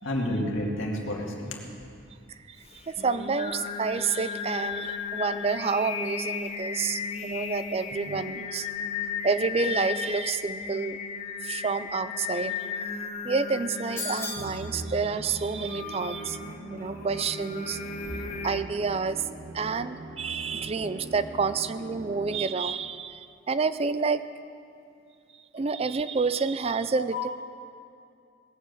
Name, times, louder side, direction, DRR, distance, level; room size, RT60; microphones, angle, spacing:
voice 1, 0.0-1.6 27.0-27.3, left 1 dB, 80° left, 0 dB, 2.2 m, -30 dB
Singing, 2.6-18.6, left 6 dB, 30° left, 0.8 m, -35 dB
voice 2, 2.9-8.7 9.2-11.0 11.4-12.7 13.2-16.4 16.7-17.8 18.2-19.2 19.5-24.3 25.5-27.3, right 4 dB, 30° right, 13 dB, 0.3 m, -29 dB
sound 1, 14.0-14.6, left 2 dB, 15° left, 1.6 m, -34 dB
Musical instrument, 14.4-22.8, right 2 dB, 65° right, 1.1 m, -42 dB
19.0 x 7.7 x 8.0 m, 2.5 s
head